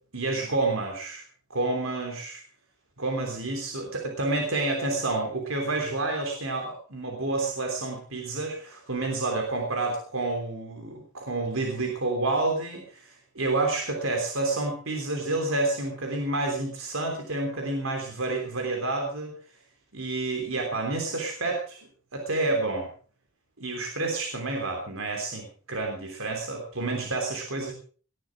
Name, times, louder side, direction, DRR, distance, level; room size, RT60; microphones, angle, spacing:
voice 1, 0.1-1.2 1.5-2.4 3.0-19.3 19.9-21.8 22.1-22.9 23.6-27.7, right 2 dB, 80° right, 2 dB, 3.3 m, -29 dB
18.5 x 12.0 x 4.7 m, 0.42 s
head